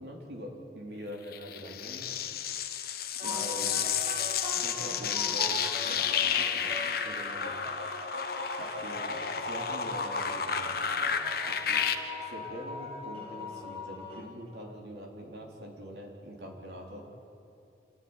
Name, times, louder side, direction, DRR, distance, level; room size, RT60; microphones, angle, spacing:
voice 1, 0.0-2.2 3.2-3.9 4.4-5.6 5.8-7.6 8.6-11.2 11.5-11.8 12.3-17.1, equal, 65° right, 0 dB, 4.0 m, -44 dB
sound 1, 1.3-11.9, left 7 dB, 60° left, 1.4 m, -31 dB
sound 2, 3.2-14.3, left 1 dB, 35° right, 2.5 m, -41 dB
27.0 x 15.0 x 9.9 m, 2.7 s
head